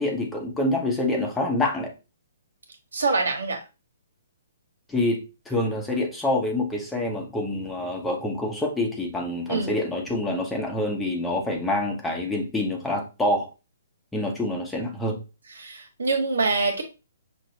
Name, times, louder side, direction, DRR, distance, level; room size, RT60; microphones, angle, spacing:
voice 1, 0.0-1.9 4.9-13.5 14.1-15.2, left 1 dB, 5° left, 0 dB, 0.9 m, -26 dB
voice 2, 2.9-3.6 9.5-9.7 15.6-16.8, right 3 dB, 80° right, 3 dB, 1.3 m, -25 dB
6.0 x 2.4 x 2.8 m, 0.29 s
hypercardioid pair, 140°, 0 cm